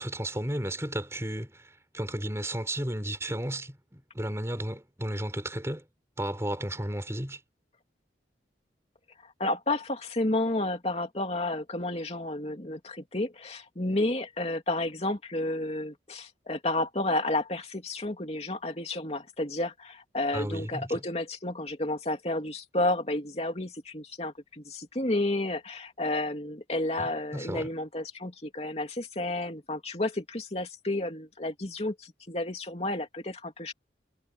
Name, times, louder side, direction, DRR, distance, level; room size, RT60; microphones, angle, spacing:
voice 1, 0.0-5.8 6.2-7.4 20.3-21.0 27.0-27.7, right 1 dB, 15° right, 4.7 m, -33 dB
voice 2, 9.4-33.7, left 2 dB, 35° left, 2.8 m, -31 dB
head